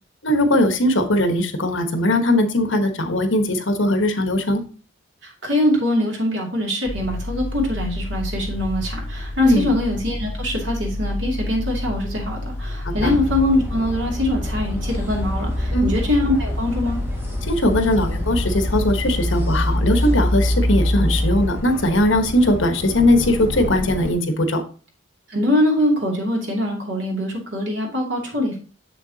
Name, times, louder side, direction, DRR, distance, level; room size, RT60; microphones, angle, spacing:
voice 1, 0.2-4.6 9.4-9.7 12.8-13.2 15.7-15.9 17.4-24.6, left 1 dB, 75° left, 7 dB, 1.2 m, -19 dB
voice 2, 5.2-17.0 25.3-28.6, left 1 dB, 65° right, -1 dB, 2.6 m, -23 dB
sound 1, 6.8-18.9, left 1 dB, 10° left, 2.6 m, -30 dB
sound 2, 13.0-24.1, left 1 dB, 10° right, 1.8 m, -25 dB
7.1 x 6.9 x 2.8 m, 0.39 s
head